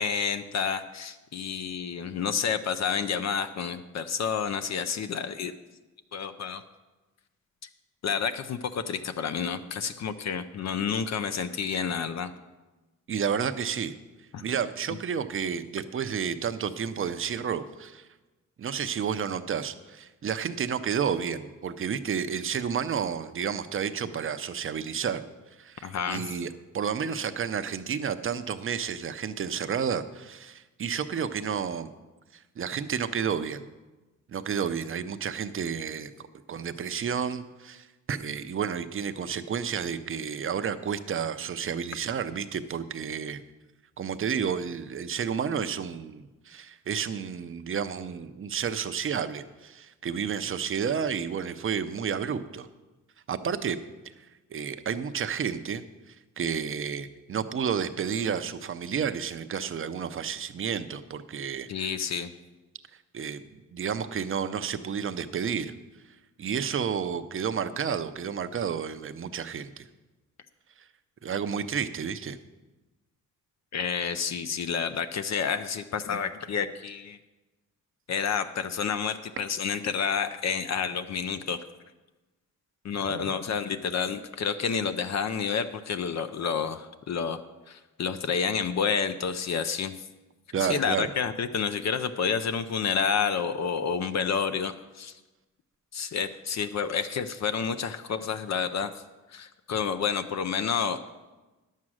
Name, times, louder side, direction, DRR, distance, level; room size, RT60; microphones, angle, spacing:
voice 1, 0.0-5.5 6.1-6.6 8.0-12.3 14.3-14.4 25.8-26.4 61.7-62.3 73.7-77.2 78.1-81.6 82.8-87.4 87.7-89.9 90.6-95.1 95.9-98.9 99.3-101.0, left 6 dB, 55° left, 10 dB, 0.6 m, -29 dB
voice 2, 13.1-13.9 14.4-18.1 18.6-25.2 25.6-31.9 32.6-33.7 34.3-36.1 36.5-43.4 44.0-52.7 53.3-53.8 54.5-61.9 63.1-65.7 66.4-69.8 71.2-72.4 83.1-83.4 90.5-91.1, right 7 dB, 40° right, 10 dB, 0.6 m, -31 dB
11.0 x 7.4 x 6.3 m, 1.1 s
cardioid pair, 120°, 32 cm